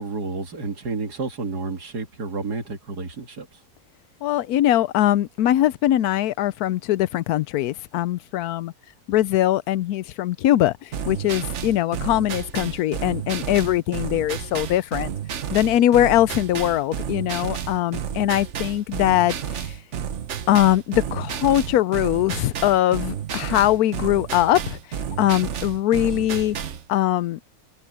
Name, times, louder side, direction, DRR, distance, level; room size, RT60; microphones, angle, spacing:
voice 1, 0.0-3.5, right 4 dB, 85° right, 2.8 m, -30 dB
voice 2, 4.2-8.7 9.1-10.7 11.1-15.1 15.5-19.4 20.5-24.8 25.2-26.6 26.9-27.4, left 13 dB, 80° left, 1.1 m, -21 dB
sound 1, 10.9-26.8, right 8 dB, 55° right, 1.1 m, -31 dB
omnidirectional pair, 1.6 m